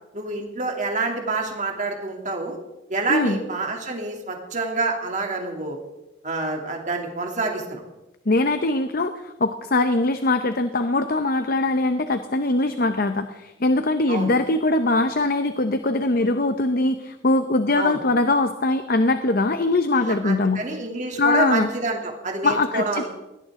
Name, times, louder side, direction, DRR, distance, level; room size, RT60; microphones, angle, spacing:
voice 1, 0.1-2.6 2.9-5.8 6.2-7.8 14.1-14.3 17.8-18.0 20.0-23.1, right 3 dB, 40° right, 1 dB, 2.9 m, -27 dB
voice 2, 8.3-20.6 21.2-21.7 22.4-23.1, left 2 dB, 50° left, 9 dB, 0.8 m, -22 dB
21.0 x 17.5 x 3.8 m, 0.99 s
head